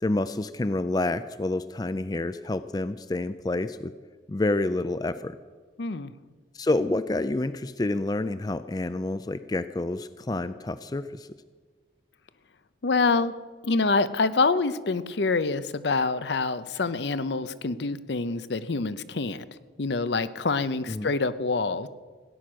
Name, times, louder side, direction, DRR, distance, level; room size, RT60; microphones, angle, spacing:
voice 1, 0.0-3.9 4.3-5.4 6.5-11.3 20.9-21.1, left 2 dB, 20° left, 13 dB, 0.4 m, -28 dB
voice 2, 5.8-6.1 12.8-13.3 13.6-19.5 19.8-21.9, left 3 dB, 75° left, 14 dB, 0.7 m, -26 dB
17.5 x 10.5 x 6.2 m, 1.5 s
head